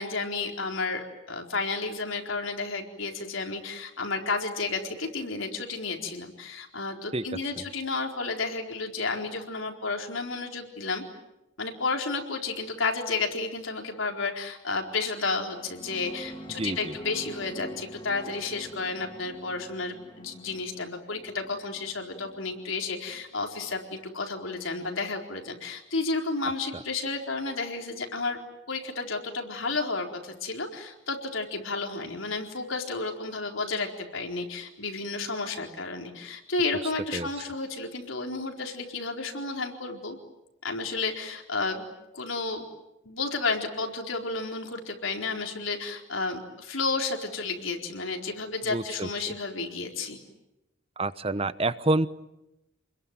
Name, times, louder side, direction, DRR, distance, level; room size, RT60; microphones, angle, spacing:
voice 1, 0.0-11.0 11.6-28.4 28.7-40.2 40.6-41.9 42.1-42.7 43.0-50.2, left 3 dB, 85° left, 2 dB, 4.3 m, -32 dB
sound 1, 15.4-24.0, equal, 25° left, 2.4 m, -46 dB
voice 2, 16.6-16.9 26.7-26.8 37.1-37.3 48.7-49.1 51.0-52.1, right 2 dB, 30° right, 14 dB, 0.9 m, -27 dB
29.5 x 22.0 x 9.2 m, 0.94 s
head